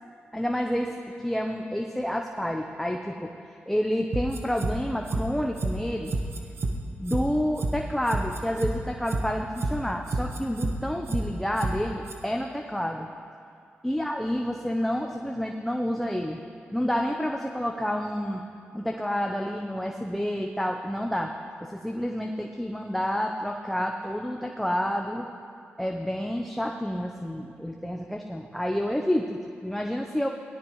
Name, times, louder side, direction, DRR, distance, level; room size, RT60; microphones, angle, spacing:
voice 1, 0.3-3.3 3.7-6.1 7.0-13.1 13.8-16.4 16.7-18.4 18.7-21.3 21.6-25.3 25.8-30.3, equal, 5° left, 1 dB, 0.8 m, -29 dB
sound 1, 4.1-4.7 5.1-5.2 5.6-5.7 6.1-6.7 7.1-7.2 7.6-7.7 8.1-8.7 9.1-9.2 9.6-9.7 10.1-10.7 11.1-11.2 11.6-11.7 12.1-12.2, right 3 dB, 65° right, 1.2 m, -28 dB
17.5 x 12.0 x 3.2 m, 2.4 s
cardioid pair, 55°, 4 cm